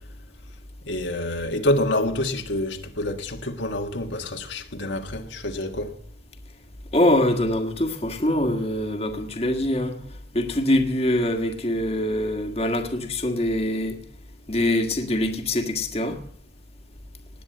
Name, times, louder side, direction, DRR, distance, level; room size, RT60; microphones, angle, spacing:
voice 1, 0.8-6.0, left 1 dB, 80° left, 1.7 m, -27 dB
voice 2, 6.9-10.0 10.3-14.0 14.5-16.2, left 1 dB, 35° left, 1.6 m, -24 dB
19.0 x 8.8 x 7.8 m
head